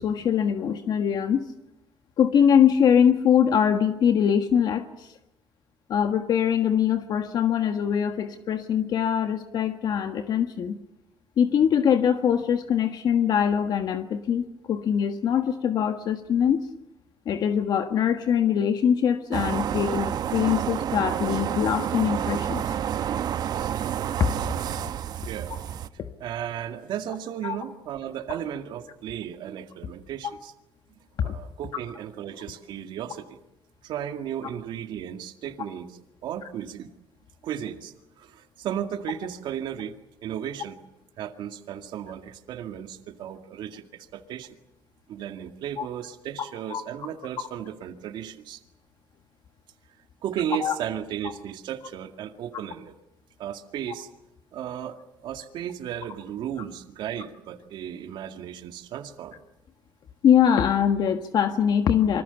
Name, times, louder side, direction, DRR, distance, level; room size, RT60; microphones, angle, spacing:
voice 1, 0.0-1.4 2.2-5.2 5.9-10.8 11.4-16.7 17.2-22.6 24.3-24.5 27.4-27.6 31.2-31.4 45.8-45.9 46.7-46.8 50.6-50.7 60.2-62.2, left 8 dB, 60° left, 7 dB, 1.5 m, -23 dB
sound 1, 19.3-25.9, right 9 dB, 55° right, 1.0 m, -29 dB
voice 2, 25.2-25.8 26.2-30.5 31.2-33.4 33.8-36.9 37.4-40.8 41.2-44.6 45.1-48.6 50.2-52.9 53.4-54.1 54.5-59.4, right 10 dB, 75° right, 7 dB, 2.1 m, -35 dB
27.5 x 25.0 x 7.0 m, 0.90 s
cardioid pair, 130°, 8 cm